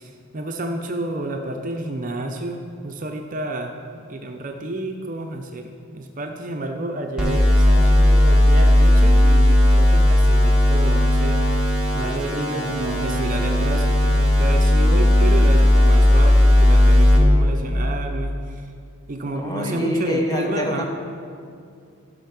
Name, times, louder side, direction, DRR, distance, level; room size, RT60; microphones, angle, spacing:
voice 1, 0.0-3.7 4.1-11.6 11.9-18.7 19.1-20.8, right 2 dB, 35° right, 3 dB, 0.6 m, -30 dB
sound 1, 7.2-17.2, left 1 dB, 5° right, 1.4 m, -15 dB
voice 2, 12.4-12.8 19.3-20.8, equal, 15° left, 1 dB, 1.0 m, -26 dB
14.0 x 5.6 x 5.8 m, 2.4 s
head